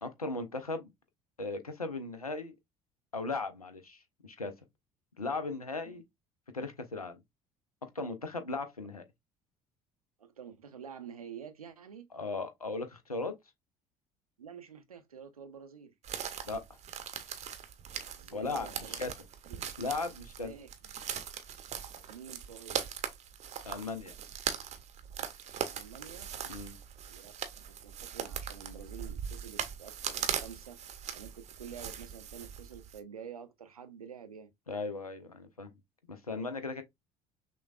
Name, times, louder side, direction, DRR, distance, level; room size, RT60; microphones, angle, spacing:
voice 1, 0.0-0.9 1.4-2.5 3.1-4.5 5.2-6.0 6.5-7.2 7.8-9.0 12.1-13.3 16.4-16.8 18.3-19.1 19.8-20.5 23.6-24.1 26.5-26.8 34.7-35.7 36.1-36.8, left 3 dB, 90° left, 0.5 m, -37 dB
voice 2, 10.2-12.1 14.4-15.9 18.1-19.1 19.5-19.7 20.4-20.9 22.1-22.9 25.7-26.3 27.1-30.8 31.1-34.5, right 7 dB, 85° right, 0.5 m, -48 dB
sound 1, 16.0-33.0, right 8 dB, 40° right, 0.7 m, -40 dB
5.9 x 2.2 x 2.3 m
figure-of-eight pair, 55°, 18 cm